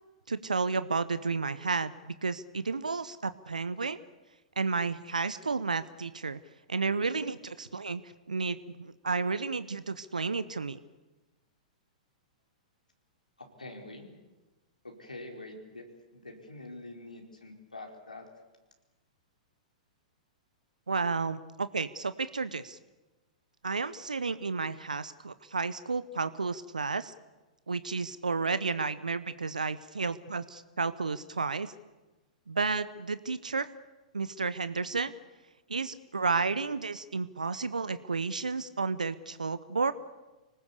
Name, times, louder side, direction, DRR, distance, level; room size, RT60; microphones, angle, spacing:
voice 1, 0.3-1.9 2.2-4.0 4.6-6.4 6.7-10.8 20.9-22.8 23.6-27.1 27.7-31.7 32.5-33.7 34.1-35.1 35.7-39.9, right 4 dB, 85° right, 14 dB, 0.8 m, -32 dB
voice 2, 13.4-14.1 14.8-15.9 16.1-18.3, left 2 dB, 90° left, 2 dB, 4.6 m, -45 dB
25.5 x 19.5 x 8.3 m, 1.1 s
figure-of-eight pair, 110°, 4 cm